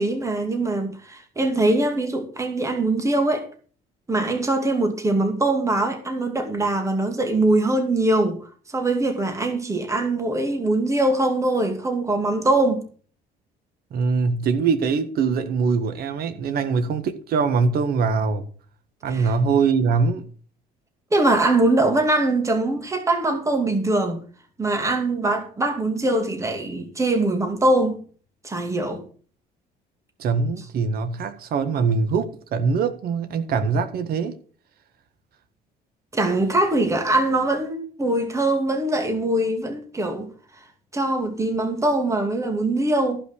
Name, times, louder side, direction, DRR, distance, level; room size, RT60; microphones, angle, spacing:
voice 1, 0.0-3.5 4.1-12.8 19.1-19.3 21.1-24.2 24.6-28.0 28.4-29.0 36.1-40.3 40.6-40.7 40.9-43.2, right 2 dB, 15° right, 2.4 m, -22 dB
voice 2, 13.9-18.4 19.0-20.2 30.2-34.3, right 5 dB, 65° right, 1.6 m, -22 dB
14.5 x 5.8 x 6.4 m
cardioid pair, 110°, 17 cm